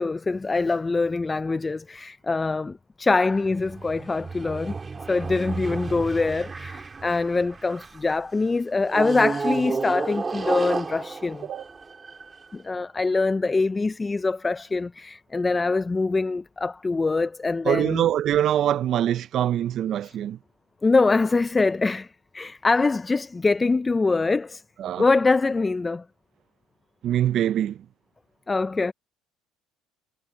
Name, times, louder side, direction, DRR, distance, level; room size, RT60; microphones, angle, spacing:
voice 1, 0.0-4.8 5.1-11.5 12.5-18.1 20.8-24.6 25.0-26.0 28.5-28.9, left 3 dB, 20° left, 0.4 m, -24 dB
sound 1, 3.4-8.1 8.9-12.5, right 4 dB, 25° right, 3.5 m, -32 dB
voice 2, 17.7-20.4 24.8-25.1 27.0-27.8, right 11 dB, 50° right, 0.4 m, -24 dB
supercardioid pair, 105°, 0 cm